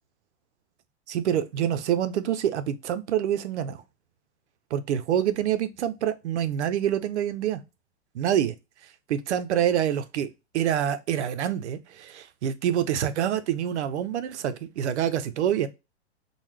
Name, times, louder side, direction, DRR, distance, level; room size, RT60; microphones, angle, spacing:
voice 1, 1.1-3.8 4.7-7.6 8.1-8.5 9.1-10.3 10.5-15.7, right 10 dB, 85° right, 0.6 m, -26 dB
3.9 x 2.1 x 3.1 m
supercardioid pair, 170°, 34 cm